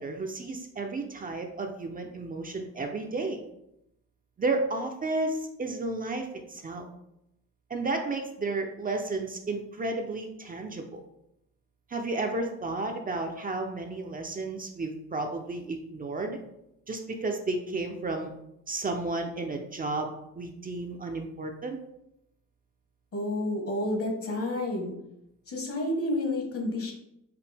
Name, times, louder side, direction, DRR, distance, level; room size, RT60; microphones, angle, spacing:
voice 1, 0.0-3.4 4.4-6.9 7.7-11.0 11.9-16.4 16.9-18.3 18.7-20.1 20.3-21.8, right 2 dB, 30° right, 3 dB, 0.5 m, -32 dB
voice 2, 23.1-24.9 25.5-26.9, left 1 dB, 50° left, 2 dB, 1.3 m, -30 dB
5.0 x 2.6 x 3.4 m, 0.82 s
cardioid pair, 90°, 30 cm